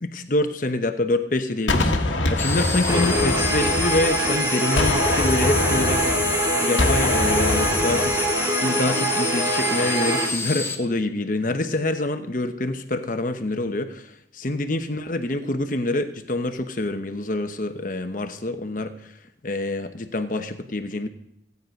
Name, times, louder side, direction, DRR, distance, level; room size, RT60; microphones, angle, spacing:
voice 1, 0.0-6.4 6.6-8.1 8.6-14.0 14.4-18.9 19.4-21.1, left 2 dB, 45° left, 8 dB, 0.9 m, -26 dB
Gunshot gunfire, 1.7-4.4 4.8-8.3, left 2 dB, 90° left, 1.5 m, -25 dB
sound 1, 2.4-10.7, left 4 dB, 10° left, 0.8 m, -28 dB
Guitar, 2.9-10.2, right 1 dB, 15° right, 2.3 m, -24 dB
16.0 x 9.5 x 5.2 m, 0.80 s
head